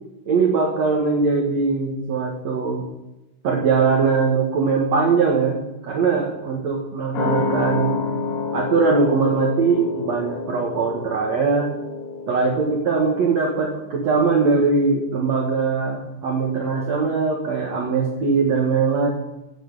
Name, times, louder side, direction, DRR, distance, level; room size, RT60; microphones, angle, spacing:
voice 1, 0.2-2.8 3.4-5.6 5.8-8.0 8.5-11.7 12.3-19.1, right 4 dB, 85° right, 1 dB, 1.5 m, -21 dB
sound 1, 7.1-14.2 14.5-14.6, left 5 dB, 60° left, 3.5 m, -29 dB
15.0 x 8.5 x 5.3 m, 0.99 s
omnidirectional pair, 5.5 m